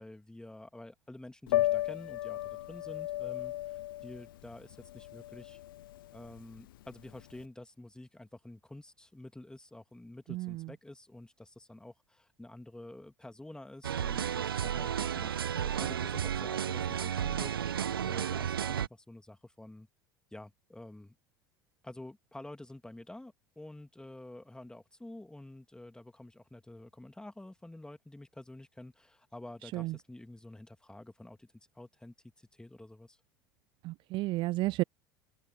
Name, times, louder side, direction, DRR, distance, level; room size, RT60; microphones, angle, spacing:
voice 1, 0.0-5.6 6.1-19.9 20.3-21.1 21.8-33.2, left 1 dB, 5° left, 2.7 m, -49 dB
Piano, 1.5-7.4, left 15 dB, 70° left, 0.8 m, -35 dB
voice 2, 10.3-10.6 29.7-29.9 33.8-34.8, right 19 dB, 45° right, 0.3 m, -32 dB
sound 1, 13.8-18.9, right 9 dB, 75° right, 1.3 m, -33 dB
open air
figure-of-eight pair, 70°, 12 cm